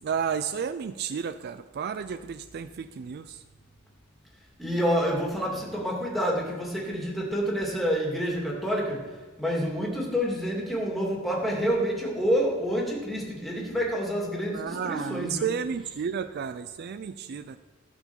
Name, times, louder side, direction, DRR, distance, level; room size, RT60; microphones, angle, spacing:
voice 1, 0.0-3.4 14.5-17.6, right 7 dB, 50° right, 12 dB, 0.4 m, -32 dB
voice 2, 4.6-9.0 9.4-15.5, equal, ahead, -3 dB, 2.5 m, -28 dB
12.5 x 4.9 x 7.1 m, 1.3 s
head